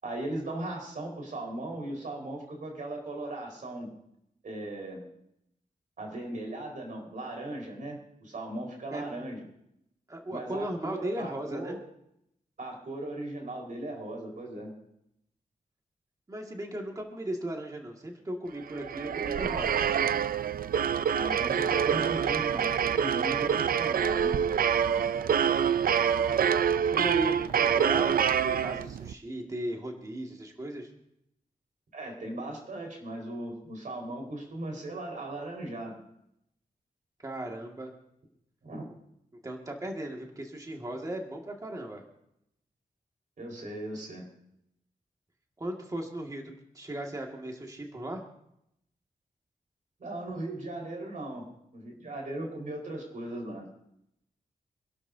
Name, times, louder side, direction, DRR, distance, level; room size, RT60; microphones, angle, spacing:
voice 1, 0.0-3.9 4.4-5.0 6.0-9.4 10.3-11.8 12.6-14.7 21.1-24.4 31.9-36.0 38.6-38.9 43.4-44.3 50.0-51.4 51.7-53.7, right 1 dB, 65° right, 0 dB, 4.5 m, -38 dB
voice 2, 10.1-11.8 16.3-19.8 26.9-30.9 37.2-37.9 39.4-42.0 45.6-48.2, right 1 dB, 25° right, 1 dB, 2.0 m, -37 dB
sound 1, 18.7-29.1, right 8 dB, 80° right, 0.5 m, -26 dB
27.0 x 12.0 x 2.7 m, 0.78 s
wide cardioid pair, 155°, 15 cm